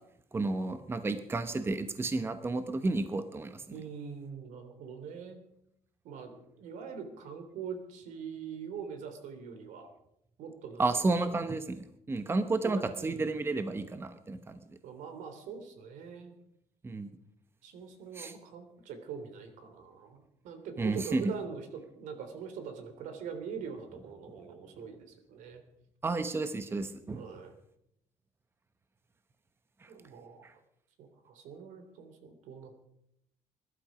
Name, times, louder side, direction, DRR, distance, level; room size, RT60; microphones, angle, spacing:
voice 1, 0.3-3.6 10.8-14.6 16.8-17.1 18.1-18.3 20.8-21.3 26.0-27.2 29.8-29.9 30.4-30.5, right 3 dB, 20° right, 10 dB, 1.0 m, -32 dB
voice 2, 3.7-5.4 6.0-9.9 10.4-10.9 11.3-11.4 12.6-13.4 14.8-16.3 17.6-25.6 27.1-27.5 29.9-30.5 31.0-32.7, right 6 dB, 80° right, 7 dB, 3.2 m, -43 dB
21.0 x 12.0 x 5.2 m, 0.78 s
cardioid pair, 135°, 13 cm